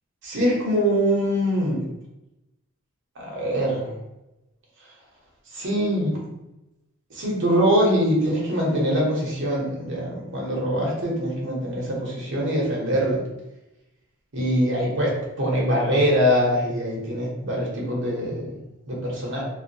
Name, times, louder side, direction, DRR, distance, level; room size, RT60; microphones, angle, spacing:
voice 1, 0.2-1.8 3.2-3.9 5.5-6.2 7.1-13.2 14.3-19.4, equal, 60° right, -3 dB, 0.9 m, -23 dB
2.5 x 2.3 x 2.7 m, 0.94 s
head